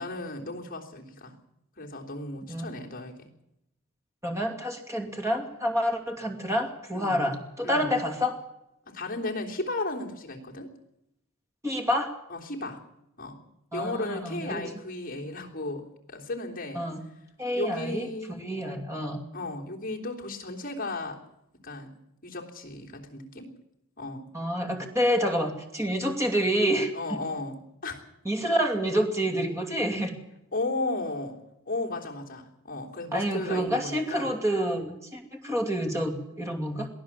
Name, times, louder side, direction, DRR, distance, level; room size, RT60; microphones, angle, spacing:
voice 1, 0.0-1.3 1.8-3.3 6.9-7.2 7.6-7.9 8.9-10.7 12.3-12.8 13.2-13.4 13.7-16.8 17.5-18.4 19.3-21.2 21.6-21.9 22.2-23.5 24.0-24.3 26.9-28.0 30.5-31.4 31.6-34.3, left 2 dB, 40° left, 0 dB, 3.3 m, -35 dB
voice 2, 4.2-8.3 11.6-12.1 13.7-14.7 16.7-17.0 17.4-19.2 24.3-26.9 28.2-30.1 33.1-36.9, equal, 15° right, 3 dB, 2.5 m, -28 dB
22.5 x 15.5 x 7.5 m, 0.84 s
head